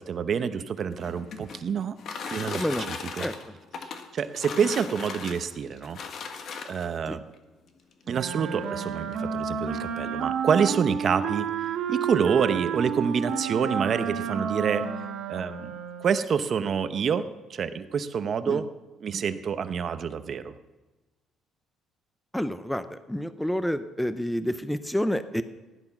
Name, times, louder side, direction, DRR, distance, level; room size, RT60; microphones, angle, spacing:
voice 1, 0.0-2.0 2.3-3.2 3.8-6.0 6.7-7.2 8.1-14.8 15.3-15.7 16.0-17.2 17.5-18.7 19.0-20.5, right 7 dB, 40° right, 11 dB, 0.8 m, -27 dB
sound 1, 0.8-7.0 7.9-8.0 8.4-8.5 8.8-9.2, left 5 dB, 50° left, 1.5 m, -38 dB
voice 2, 2.5-2.9 3.2-3.6 7.1-7.2 18.5-18.6 22.3-25.4, equal, 5° left, 12 dB, 0.6 m, -29 dB
Wind instrument woodwind instrument, 8.1-16.3, right 7 dB, 65° right, 1.8 m, -31 dB
16.0 x 11.0 x 6.0 m, 1.2 s
cardioid pair, 145°, 0 cm